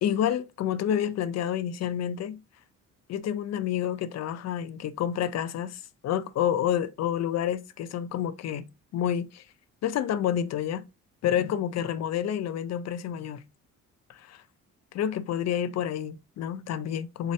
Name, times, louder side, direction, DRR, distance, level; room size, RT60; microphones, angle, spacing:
voice 1, 0.0-2.4 3.1-9.4 9.8-10.8 11.2-13.4 14.1-14.4 14.9-17.3, left 10 dB, 60° left, 0.5 m, -29 dB
4.1 x 2.8 x 3.1 m
cardioid pair, 90°, 30 cm